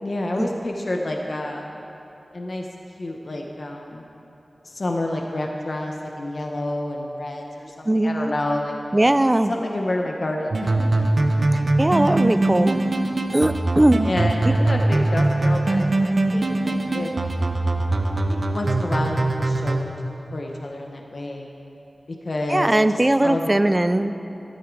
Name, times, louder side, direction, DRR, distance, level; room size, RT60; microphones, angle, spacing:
voice 1, 0.0-1.7 2.3-2.7 3.0-4.0 4.6-8.7 9.5-11.1 13.1-13.2 14.0-17.1 18.3-19.9 20.3-21.5 22.2-23.5, left 1 dB, 60° left, 1 dB, 1.0 m, -29 dB
voice 2, 7.9-8.3 8.9-9.5 11.8-12.8 13.3-14.0 22.5-24.1, right 1 dB, 25° right, 11 dB, 0.5 m, -19 dB
sound 1, 10.5-19.8, right 2 dB, 70° right, 0.8 m, -22 dB
13.0 x 12.5 x 4.7 m, 2.9 s
wide cardioid pair, 85°, 0 cm